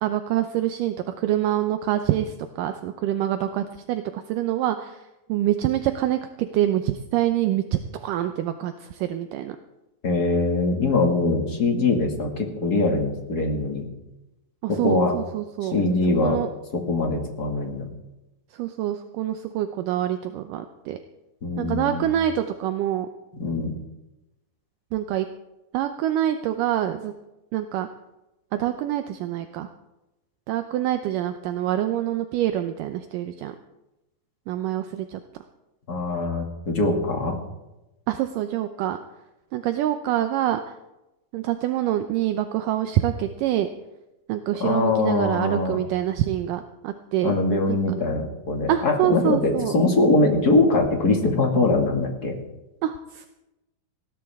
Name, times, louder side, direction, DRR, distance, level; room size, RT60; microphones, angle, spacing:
voice 1, 0.0-5.0 5.3-9.6 14.6-15.8 16.2-16.5 18.6-21.0 21.6-23.1 24.9-25.3 25.7-27.1 27.5-27.9 28.5-29.7 30.5-33.6 34.5-35.2 38.1-39.0 39.5-40.7 41.3-43.7 44.3-47.3 47.7-47.8 48.7-49.8 52.8-53.3, right 12 dB, 75° right, 8 dB, 2.2 m, -26 dB
voice 2, 10.0-13.9 14.7-15.1 15.7-16.4 16.7-17.9 21.4-22.1 23.4-23.7 35.9-37.4 44.6-45.8 47.2-52.4, left 2 dB, 35° left, 2 dB, 2.0 m, -22 dB
19.5 x 16.5 x 3.6 m, 0.99 s
omnidirectional pair, 4.0 m